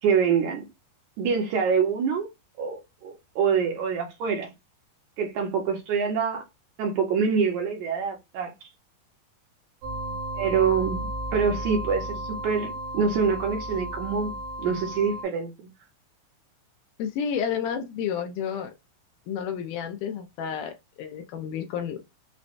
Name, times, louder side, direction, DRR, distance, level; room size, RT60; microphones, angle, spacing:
voice 1, 0.0-0.6 1.2-2.3 2.6-4.5 5.2-6.4 6.8-8.5 10.3-11.1 11.3-15.5, right 6 dB, 70° right, 1.9 m, -25 dB
sound 1, 9.8-15.2, equal, 90° right, 2.5 m, -34 dB
voice 2, 17.0-18.7 19.3-22.1, left 8 dB, 80° left, 2.0 m, -31 dB
5.9 x 2.1 x 2.5 m
omnidirectional pair, 4.0 m